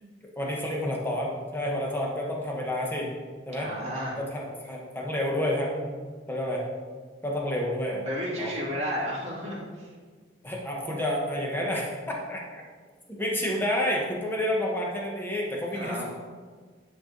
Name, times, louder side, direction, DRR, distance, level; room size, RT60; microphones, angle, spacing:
voice 1, 0.4-3.1 3.5-3.7 4.2-5.9 6.3-6.6 7.2-8.0 8.4-8.5 10.4-12.6 13.2-16.0, left 1 dB, 10° left, -2 dB, 1.0 m, -29 dB
voice 2, 3.5-4.2 8.1-9.9 15.7-16.1, equal, 35° right, -6 dB, 2.0 m, -32 dB
9.7 x 3.4 x 3.8 m, 1.5 s
head